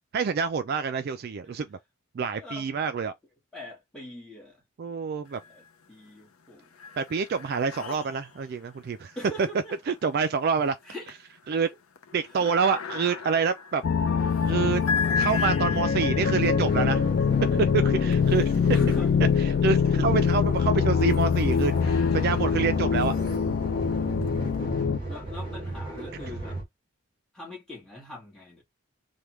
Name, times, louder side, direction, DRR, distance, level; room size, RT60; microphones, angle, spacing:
voice 1, 0.1-1.8 2.1-3.1 4.8-5.4 7.0-9.1 9.4-9.5 9.9-10.8 11.5-11.7 12.1-13.8 14.5-14.8 15.1-17.0 17.7-18.5 19.6-23.1, right 5 dB, 45° right, 0.3 m, -27 dB
voice 2, 3.5-4.6 4.9-5.0 5.5-6.7 9.1-10.0 10.8-11.1 12.3-12.5 18.7-19.1 25.1-26.6 27.3-28.6, left 1 dB, 5° left, 1.5 m, -42 dB
sound 1, 5.3-5.9 6.3-19.5 20.1-24.6, left 5 dB, 90° left, 0.6 m, -38 dB
sound 2, 13.8-25.0, left 6 dB, 55° left, 0.3 m, -24 dB
sound 3, 16.4-26.6, right 1 dB, 25° right, 1.7 m, -37 dB
3.4 x 2.2 x 2.9 m
head